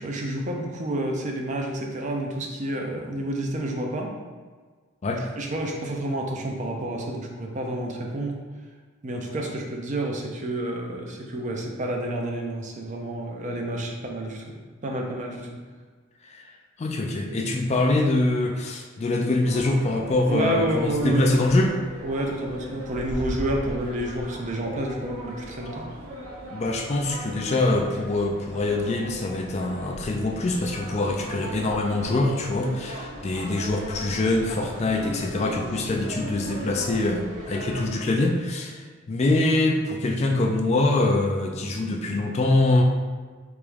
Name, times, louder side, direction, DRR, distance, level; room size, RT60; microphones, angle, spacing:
voice 1, 0.0-4.1 5.4-8.4 9.0-14.5 14.8-15.6 20.3-21.4 22.0-25.9, right 1 dB, 35° right, 1 dB, 0.5 m, -29 dB
voice 2, 16.8-21.7 26.5-42.8, left 2 dB, 30° left, 2 dB, 0.3 m, -24 dB
sound 1, 19.4-37.9, equal, 90° right, 1.0 m, -38 dB
3.5 x 3.0 x 3.3 m, 1.5 s
head